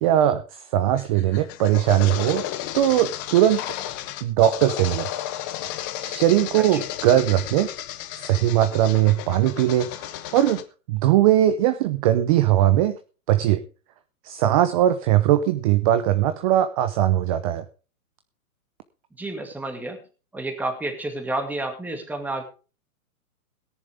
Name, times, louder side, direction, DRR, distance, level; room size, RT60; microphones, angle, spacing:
voice 1, 0.0-2.5 2.7-3.6 4.2-5.1 6.0-7.7 8.1-9.9 10.3-10.6 10.9-13.0 13.3-13.6 14.2-17.6, right 12 dB, 25° right, 11 dB, 0.7 m, -20 dB
sound 1, 1.0-10.6, left 12 dB, 15° left, 0.6 m, -33 dB
voice 2, 19.2-20.0 20.3-22.4, right 2 dB, 5° right, 4 dB, 2.2 m, -30 dB
17.5 x 10.5 x 3.5 m, 0.35 s
hypercardioid pair, 150°, 44 cm